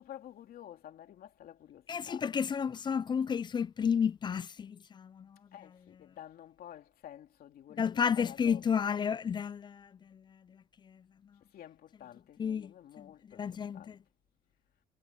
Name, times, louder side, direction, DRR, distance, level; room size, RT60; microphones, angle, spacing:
voice 1, 0.0-2.3 5.5-8.9 11.5-14.0, left 11 dB, 60° left, 2.9 m, -51 dB
voice 2, 1.9-5.4 7.8-10.2 10.9-11.0 12.4-12.7 13.0-13.1 13.4-14.0, left 7 dB, 25° left, 0.4 m, -32 dB
cardioid pair, 110°, 17 cm